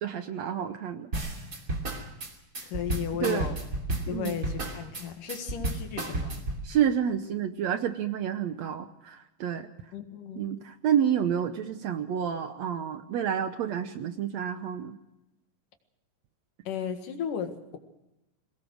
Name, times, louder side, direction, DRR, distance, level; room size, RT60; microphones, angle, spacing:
voice 1, 0.0-1.1 3.2-3.5 4.1-4.4 6.6-9.7 10.4-15.0, right 9 dB, 70° right, 9 dB, 1.8 m, -29 dB
sound 1, 1.1-6.6, right 2 dB, 25° right, 2.8 m, -32 dB
voice 2, 2.6-3.6 4.1-6.5 9.9-10.5 16.7-17.8, left 8 dB, 75° left, 6 dB, 3.3 m, -35 dB
22.5 x 19.0 x 6.3 m, 0.91 s
omnidirectional pair, 3.9 m